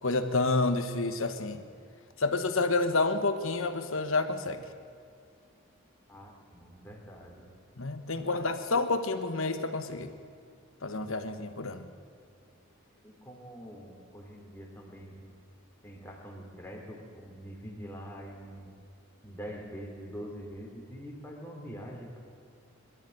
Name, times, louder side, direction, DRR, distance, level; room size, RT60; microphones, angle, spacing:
voice 1, 0.0-1.6 2.2-4.6 7.8-10.1 10.8-11.9, left 3 dB, 65° left, 9 dB, 1.3 m, -29 dB
voice 2, 6.1-7.5 8.1-8.4 8.7-8.8 13.0-15.3 15.8-18.7 19.2-22.2, equal, 10° left, 0 dB, 3.0 m, -44 dB
22.0 x 13.0 x 9.3 m, 2.3 s
head